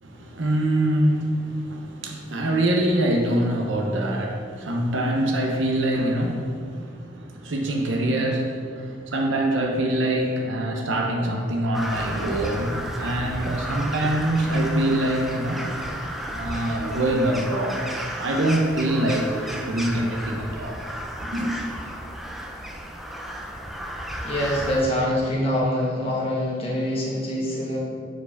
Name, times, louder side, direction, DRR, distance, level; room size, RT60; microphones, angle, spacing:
voice 1, 0.0-15.7 16.3-17.8 18.2-20.8 21.3-21.5, right 1 dB, 80° right, 0.7 m, -24 dB
Crow, 11.7-24.8, equal, ahead, 0.4 m, -33 dB
voice 2, 24.2-27.8, left 1 dB, 30° left, 1.3 m, -25 dB
4.8 x 4.5 x 5.2 m
head